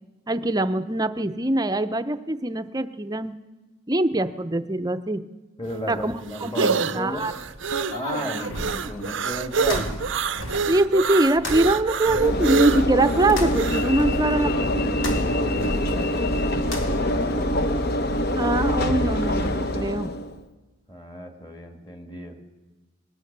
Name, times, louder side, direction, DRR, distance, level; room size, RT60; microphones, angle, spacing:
voice 1, 0.3-3.3 3.9-5.2 5.9-6.1 6.4-7.3 10.7-14.9 18.3-20.1, right 1 dB, 20° right, 10 dB, 0.6 m, -23 dB
voice 2, 5.6-7.3 7.9-9.9 14.4-17.5 20.9-22.4, equal, 20° left, 4 dB, 1.8 m, -34 dB
sound 1, 5.7-13.9, right 5 dB, 60° right, 0.6 m, -27 dB
sound 2, 7.1-17.3, left 1 dB, 85° left, 2.5 m, -35 dB
Train / Engine / Alarm, 12.1-20.4, left 1 dB, 50° left, 0.9 m, -24 dB
21.0 x 19.0 x 6.7 m, 1.2 s
head